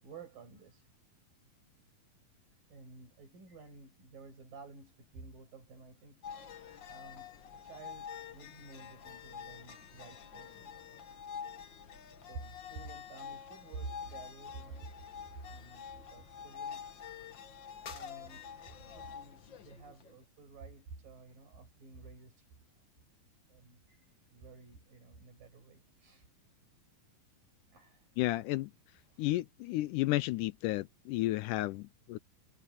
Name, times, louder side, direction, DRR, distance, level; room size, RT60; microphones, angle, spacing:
voice 1, 0.0-0.9 2.7-7.3 7.6-10.8 11.3-11.5 12.2-16.8 17.9-22.5 23.5-26.5 27.7-28.1 29.1-29.3, right 4 dB, 70° right, 8.2 m, -51 dB
sound 1, 6.2-20.2, left 7 dB, 60° left, 1.2 m, -47 dB
voice 2, 28.2-28.7 29.2-32.2, left 17 dB, 80° left, 1.9 m, -32 dB
omnidirectional pair, 4.1 m